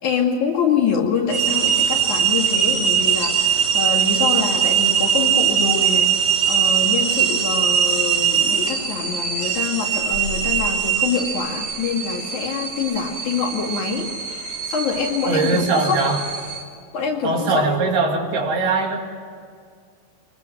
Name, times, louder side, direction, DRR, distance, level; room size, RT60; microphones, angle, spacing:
voice 1, 0.0-16.2 16.9-17.8, left 6 dB, 50° left, -1 dB, 3.4 m, -25 dB
sound 1, 1.3-16.6, right 8 dB, 40° right, 3.9 m, -21 dB
voice 2, 15.3-16.2 17.2-19.0, right 3 dB, 65° right, 2 dB, 4.4 m, -21 dB
24.0 x 22.0 x 7.7 m, 2.2 s
omnidirectional pair, 4.9 m